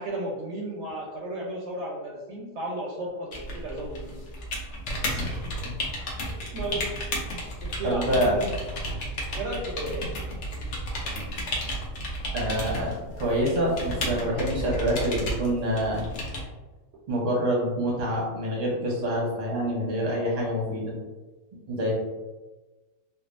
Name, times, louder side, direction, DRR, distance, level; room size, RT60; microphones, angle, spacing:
voice 1, 0.0-4.2 6.5-8.5 9.3-10.0 11.0-11.1, right 2 dB, 65° right, -3 dB, 0.8 m, -34 dB
sound 1, 3.3-16.4, equal, 65° left, 1.0 m, -33 dB
voice 2, 5.0-5.7 7.8-8.3 12.3-16.1 17.1-20.9 21.7-21.9, equal, 35° right, -3 dB, 0.8 m, -27 dB
3.4 x 2.3 x 2.4 m, 1.2 s
omnidirectional pair, 1.3 m